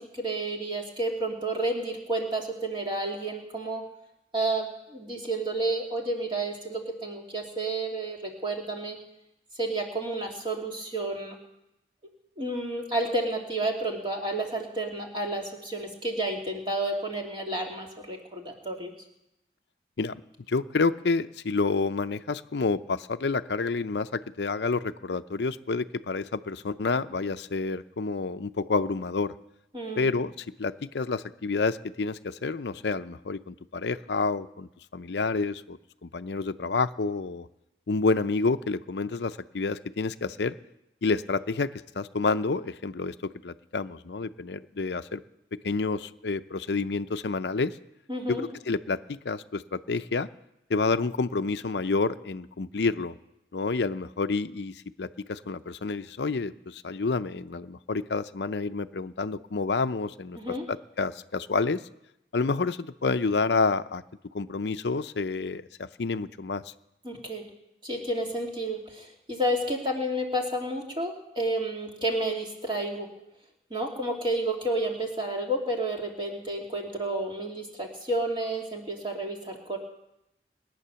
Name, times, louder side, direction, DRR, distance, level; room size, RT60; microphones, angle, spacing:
voice 1, 0.2-3.8 4.3-9.0 9.6-11.3 12.4-18.9 29.7-30.1 48.1-48.5 60.4-60.6 67.0-67.4 67.8-73.1 73.7-79.8, right 1 dB, 30° right, 0 dB, 2.6 m, -31 dB
voice 2, 20.5-29.3 30.0-30.3 30.6-37.5 37.9-40.5 41.0-41.7 41.9-43.1 43.4-45.2 45.6-47.7 48.3-50.3 50.7-53.1 53.5-60.4 60.7-61.8 62.3-64.0 64.3-66.6, left 4 dB, 75° left, 12 dB, 0.6 m, -29 dB
21.0 x 9.3 x 6.9 m, 0.85 s
head